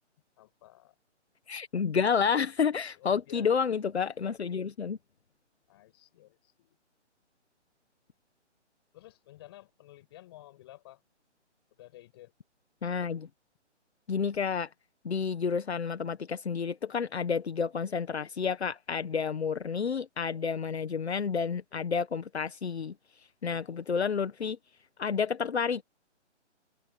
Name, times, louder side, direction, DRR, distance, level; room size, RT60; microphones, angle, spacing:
voice 1, 0.4-1.0 2.7-3.5 5.7-6.8 8.9-11.0 11.8-12.3, left 15 dB, 20° left, 5.7 m, -53 dB
voice 2, 1.5-5.0 12.8-13.3 14.1-14.7 15.0-22.9 23.4-24.6 25.0-25.8, left 6 dB, 60° left, 1.6 m, -30 dB
hypercardioid pair, 175°, 36 cm